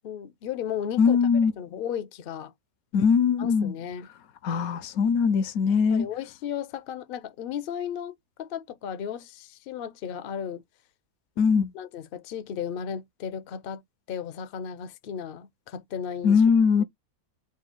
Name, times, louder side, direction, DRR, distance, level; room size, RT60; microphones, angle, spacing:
voice 1, 0.0-2.5 3.4-4.1 5.9-10.6 11.7-13.8 14.1-16.4, left 8 dB, 60° left, 0.6 m, -35 dB
voice 2, 1.0-1.5 2.9-3.7 4.4-6.1 11.4-11.7 16.2-16.8, left 6 dB, 75° left, 1.0 m, -21 dB
3.7 x 2.3 x 4.3 m
omnidirectional pair, 1.5 m